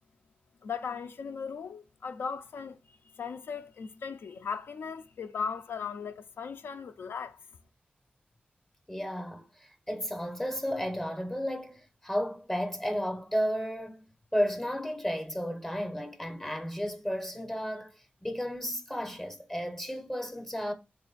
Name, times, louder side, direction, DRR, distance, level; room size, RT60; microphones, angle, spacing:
voice 1, 0.6-2.8 3.2-7.4, left 6 dB, 85° left, 0.4 m, -37 dB
voice 2, 8.9-14.0 14.3-18.0 18.2-20.7, equal, 10° left, 0.6 m, -33 dB
3.3 x 2.5 x 3.9 m
wide cardioid pair, 130°, 4 cm